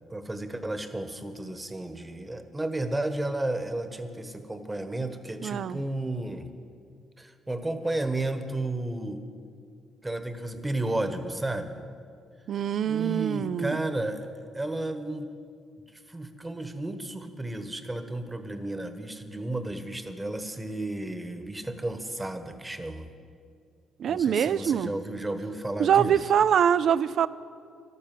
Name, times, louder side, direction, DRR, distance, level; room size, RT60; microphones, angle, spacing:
voice 1, 0.1-6.5 7.2-9.3 10.0-11.8 12.8-14.3 14.5-15.3 16.1-23.1 24.0-26.2, right 2 dB, 15° right, 9 dB, 1.2 m, -33 dB
voice 2, 5.4-5.8 12.5-13.8 24.0-24.9 25.8-27.3, right 8 dB, 65° right, 16 dB, 0.4 m, -24 dB
12.5 x 12.0 x 7.5 m, 2.3 s
cardioid pair, 90°, 0 cm